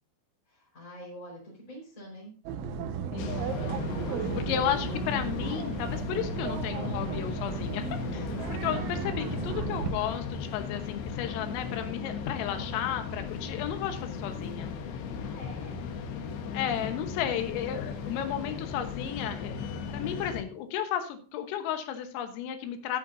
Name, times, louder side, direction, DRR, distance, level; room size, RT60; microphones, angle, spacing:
voice 1, 0.5-2.3 3.6-5.0 8.1-8.6 9.0-9.2 12.5-12.9 15.2-15.9 16.3-17.7, equal, 15° left, -6 dB, 4.5 m, -47 dB
sound 1, 2.5-9.9, right 6 dB, 75° right, 3.4 m, -34 dB
voice 2, 3.1-3.5 4.5-7.8 8.1-14.7 16.5-19.6 19.9-23.0, left 9 dB, 85° left, 7 dB, 3.9 m, -33 dB
sound 2, 3.2-20.4, left 6 dB, 70° left, 3.1 m, -37 dB
13.5 x 10.5 x 2.7 m, 0.38 s
omnidirectional pair, 5.8 m